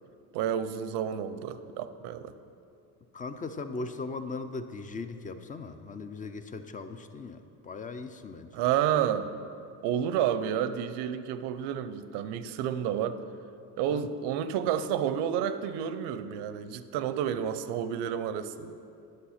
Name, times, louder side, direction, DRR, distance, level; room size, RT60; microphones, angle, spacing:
voice 1, 0.3-2.3 8.5-9.3 9.8-13.2 13.8-18.7, right 9 dB, 85° right, 12 dB, 0.6 m, -30 dB
voice 2, 3.1-8.6 13.9-14.1, left 3 dB, 20° left, 10 dB, 0.3 m, -39 dB
10.0 x 6.2 x 5.7 m, 2.5 s
cardioid pair, 125°, 40 cm